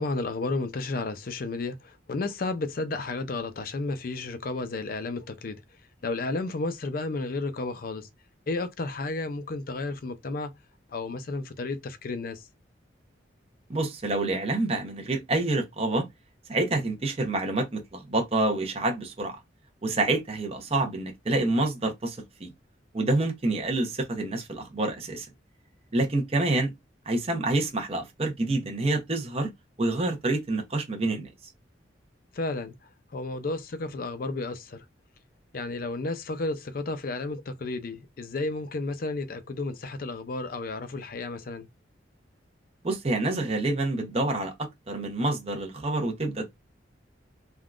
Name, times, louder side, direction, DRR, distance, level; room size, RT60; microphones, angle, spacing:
voice 1, 0.0-5.6 6.0-8.1 8.5-10.5 10.9-12.5 32.3-32.7 33.1-34.8 35.5-41.7, left 3 dB, 50° left, 0.4 m, -32 dB
voice 2, 13.7-16.0 16.5-19.4 19.8-22.5 22.9-25.3 25.9-26.7 27.1-29.5 29.8-31.3 42.8-44.5 44.9-46.5, right 2 dB, 30° right, 0.7 m, -27 dB
3.5 x 2.3 x 2.4 m
head